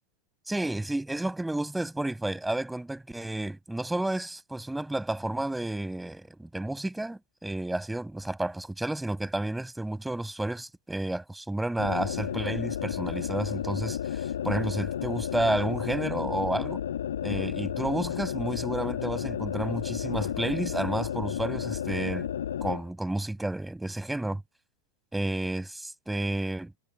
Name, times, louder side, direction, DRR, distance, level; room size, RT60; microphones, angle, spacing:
voice 1, 0.5-16.8 17.2-22.3 22.6-24.4 25.1-26.8, right 1 dB, 5° right, 7.8 m, -31 dB
sound 1, 11.8-22.8, left 9 dB, 65° left, 2.1 m, -32 dB
figure-of-eight pair, 90°, 0 cm